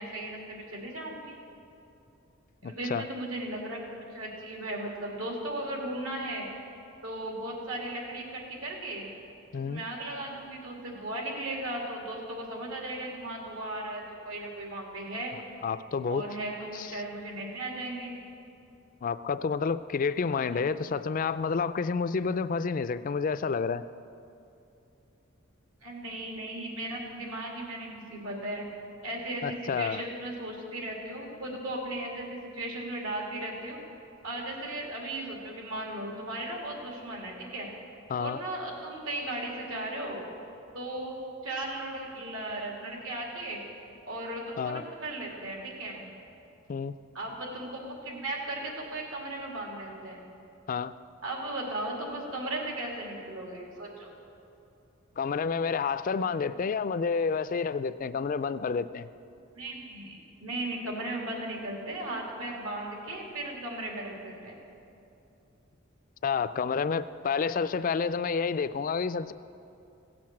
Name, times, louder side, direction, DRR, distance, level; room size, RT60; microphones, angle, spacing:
voice 1, 0.0-1.4 2.6-3.8 4.1-6.5 7.0-9.1 9.5-15.3 16.1-18.2 20.5-20.6 25.8-28.6 29.0-33.8 34.2-37.7 38.2-40.3 40.7-43.6 44.1-46.0 47.1-50.2 51.2-54.1 59.5-64.6, right 1 dB, 80° right, -1 dB, 2.5 m, -36 dB
voice 2, 2.6-3.0 9.5-9.8 15.6-16.2 16.7-16.9 19.0-23.8 29.4-30.0 38.1-38.4 44.6-44.8 46.7-47.0 50.7-50.9 55.2-59.1 66.2-69.3, left 5 dB, 40° left, 13 dB, 0.4 m, -29 dB
16.5 x 7.8 x 7.4 m, 2.7 s
head